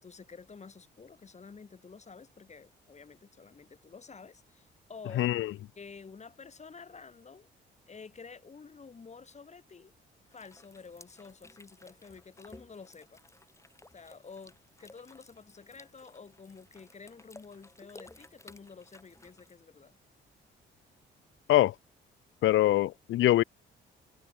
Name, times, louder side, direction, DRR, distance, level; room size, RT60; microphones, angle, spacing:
voice 1, 0.0-5.2 5.8-7.5 7.9-9.9 10.3-13.2 13.9-20.0, left 5 dB, 35° left, 7.3 m, -50 dB
voice 2, 5.2-5.5 21.5-21.7 22.4-23.4, left 14 dB, 80° left, 1.1 m, -23 dB
sound 1, 10.3-19.5, left 2 dB, 15° left, 7.6 m, -56 dB
cardioid pair, 90°, 20 cm